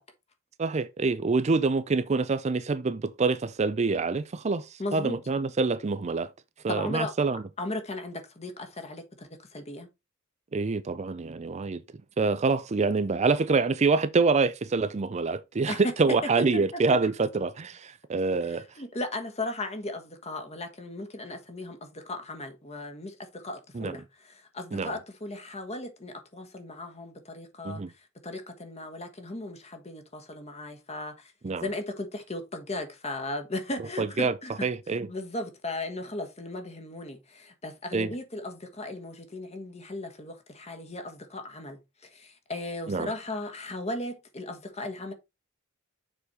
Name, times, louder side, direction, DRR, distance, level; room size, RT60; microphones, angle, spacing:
voice 1, 0.6-6.3 6.6-7.4 10.5-11.8 12.2-18.7 23.7-24.0 24.7-24.9 27.6-27.9 31.4-31.6 34.0-34.3 34.6-35.1 37.9-38.1 42.9-43.1, right 4 dB, 35° right, 0.4 m, -26 dB
voice 2, 4.8-5.2 6.7-7.1 7.6-9.9 15.7-15.9 16.5-17.1 18.8-27.8 28.2-31.3 31.6-45.1, left 2 dB, 30° left, 1.4 m, -36 dB
7.0 x 5.2 x 4.2 m
head